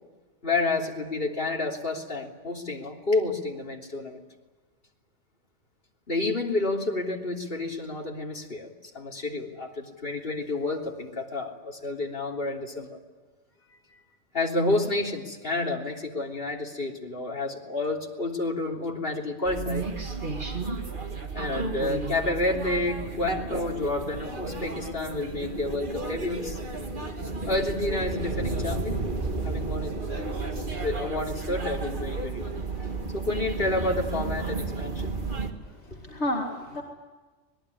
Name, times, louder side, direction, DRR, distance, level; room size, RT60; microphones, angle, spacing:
voice 1, 0.4-4.2 6.1-13.0 13.9-14.0 14.3-19.8 21.3-26.6 27.5-29.0 29.4-29.9 30.8-32.4 32.8-35.2 35.9-36.0, left 2 dB, 50° left, 0 dB, 3.5 m, -30 dB
sound 1, 19.5-35.5, right 3 dB, 45° right, 2.3 m, -32 dB
voice 2, 35.6-36.8, left 1 dB, 70° left, 0 dB, 2.6 m, -32 dB
25.5 x 20.0 x 9.9 m, 1.3 s
omnidirectional pair, 1.2 m